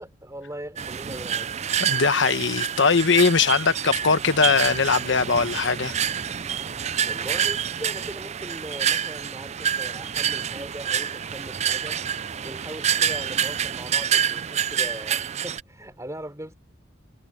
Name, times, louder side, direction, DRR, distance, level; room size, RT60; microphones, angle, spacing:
voice 1, 0.0-1.5 7.0-12.0 12.4-16.5, right 1 dB, 15° right, 5.3 m, -39 dB
sound 1, 0.8-15.6, right 8 dB, 35° right, 0.4 m, -27 dB
voice 2, 1.8-5.9, left 5 dB, 65° left, 1.2 m, -21 dB
head